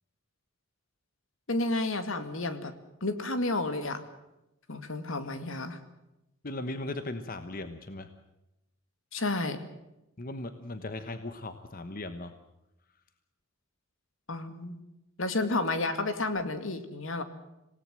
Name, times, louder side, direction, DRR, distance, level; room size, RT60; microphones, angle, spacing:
voice 1, 1.5-2.7 3.0-4.0 4.7-5.8 9.1-9.6 14.3-14.8 15.2-17.2, left 2 dB, 70° left, 9 dB, 2.2 m, -31 dB
voice 2, 6.4-8.1 10.2-12.3, left 2 dB, 45° left, 9 dB, 1.1 m, -38 dB
27.0 x 18.0 x 7.7 m, 0.92 s
head